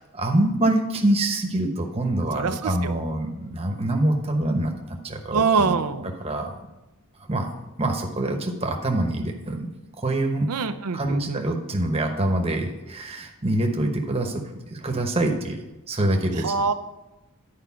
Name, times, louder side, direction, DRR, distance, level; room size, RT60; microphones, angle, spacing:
voice 1, 0.1-5.8 6.2-6.5 7.3-7.5 7.8-9.7 10.0-10.5 10.9-16.5, right 1 dB, 25° right, 3 dB, 1.0 m, -25 dB
voice 2, 2.3-3.0 5.3-6.1 10.5-11.4 16.4-16.7, right 5 dB, 90° right, 11 dB, 0.6 m, -24 dB
10.5 x 5.0 x 5.7 m, 1.0 s
head